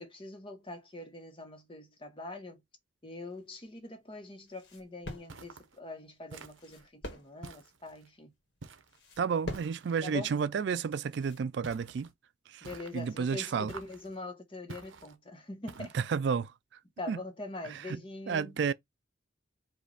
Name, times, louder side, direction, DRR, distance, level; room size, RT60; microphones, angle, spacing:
voice 1, 0.0-2.6 3.0-8.3 10.0-10.3 12.6-16.0 17.0-18.6, left 2 dB, 25° left, 1.0 m, -43 dB
sound 1, 3.2-11.5, left 1 dB, 65° left, 1.4 m, -47 dB
sound 2, 5.3-5.8 6.3-6.9 7.4-8.1 8.6-9.0 9.5-10.1 11.6-12.1 12.6-13.2 13.7-14.2 14.7-15.2 15.7-16.2, right 4 dB, 80° right, 0.8 m, -49 dB
voice 2, 9.2-12.1 12.5-12.7 12.9-13.7 15.9-16.5 17.1-17.2 17.7-18.0 18.3-18.7, right 6 dB, 60° right, 0.3 m, -31 dB
5.0 x 2.5 x 3.9 m
head